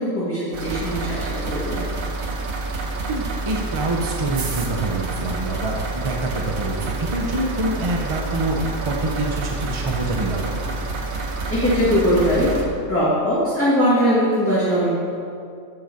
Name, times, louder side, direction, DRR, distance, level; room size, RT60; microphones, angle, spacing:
voice 1, 0.0-1.8 11.5-12.5 12.9-14.9, equal, 10° left, -10 dB, 1.6 m, -20 dB
sound 1, 0.5-12.7, right 3 dB, 85° right, 1.3 m, -28 dB
voice 2, 3.1-10.5, right 2 dB, 35° right, 0 dB, 0.5 m, -26 dB
8.8 x 5.7 x 5.2 m, 2.4 s
omnidirectional pair, 1.4 m